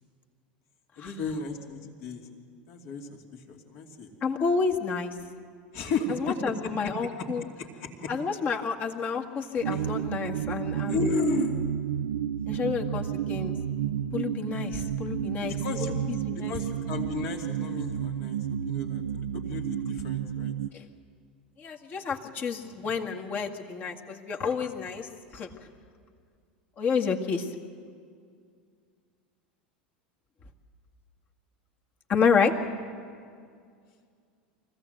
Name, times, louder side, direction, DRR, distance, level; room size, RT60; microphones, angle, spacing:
voice 1, 1.0-2.3 2.7-4.1 5.7-6.4 6.6-7.3 7.6-8.1 9.7-9.8 10.9-11.6 15.4-15.9 16.3-18.4 18.6-20.5, left 4 dB, 55° left, 2 dB, 2.8 m, -33 dB
voice 2, 4.2-5.1 6.1-7.4 8.1-11.0 12.5-13.6 14.1-16.5 20.7-20.8 21.6-25.5 26.8-27.5 32.1-32.5, left 5 dB, 35° left, 2 dB, 2.0 m, -29 dB
sound 1, 9.6-20.7, right 9 dB, 75° right, 0.4 m, -31 dB
24.0 x 16.0 x 8.0 m, 2.2 s
hypercardioid pair, 85°, 5 cm